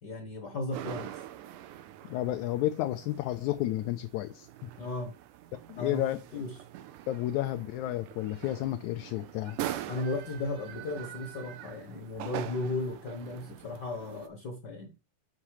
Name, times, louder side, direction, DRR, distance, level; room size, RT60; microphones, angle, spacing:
voice 1, 0.0-1.2 4.8-5.1 5.8-6.0 6.3-6.5 9.9-14.9, left 2 dB, 45° left, 1.4 m, -35 dB
sound 1, 0.7-14.3, right 12 dB, 80° right, 2.2 m, -43 dB
voice 2, 2.0-4.7 5.7-6.4 7.1-9.6, left 14 dB, 75° left, 1.9 m, -32 dB
7.4 x 6.0 x 4.8 m
omnidirectional pair, 3.7 m